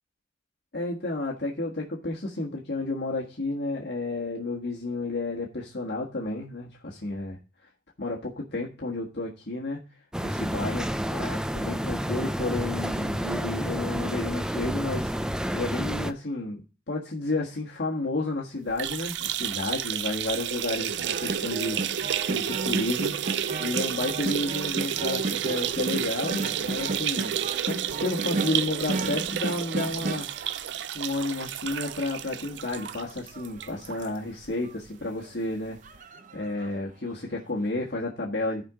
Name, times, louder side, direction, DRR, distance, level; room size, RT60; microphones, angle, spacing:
voice 1, 0.7-7.4 8.0-9.8 10.2-27.4 27.6-30.5 30.9-36.1 36.3-38.7, left 2 dB, 65° left, -2 dB, 1.7 m, -32 dB
sound 1, 10.1-16.1, equal, 5° right, 0.4 m, -30 dB
sound 2, 18.7-34.1 34.4-34.5 34.9-35.0 36.0-36.1, right 9 dB, 75° right, 0.5 m, -31 dB
sound 3, 20.9-31.2 31.7-34.1 34.6-34.7 35.0-35.3 35.8-36.8 37.1-37.2, right 3 dB, 45° right, 0.8 m, -35 dB
13.5 x 5.3 x 5.0 m, 0.32 s
head